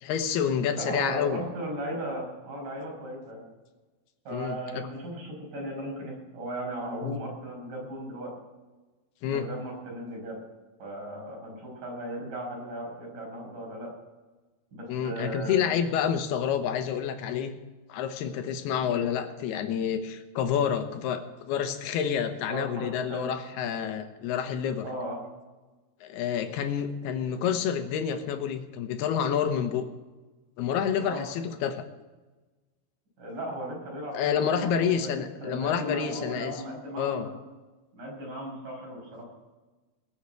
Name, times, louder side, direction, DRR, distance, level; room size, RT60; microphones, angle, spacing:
voice 1, 0.0-1.4 4.3-4.9 7.0-7.2 9.2-9.5 14.9-17.6 17.9-24.9 26.0-29.9 30.6-31.8 34.1-36.5 37.0-37.3, left 8 dB, 75° left, 7 dB, 2.9 m, -28 dB
voice 2, 0.7-3.4 4.2-8.3 9.3-10.4 10.8-13.9 14.7-15.7 18.8-19.0 22.5-23.3 24.8-25.2 27.2-27.3 31.0-31.3 33.2-37.4 37.9-39.3, right 1 dB, 45° right, -2 dB, 6.8 m, -36 dB
19.5 x 7.3 x 7.9 m, 1.2 s
omnidirectional pair, 5.0 m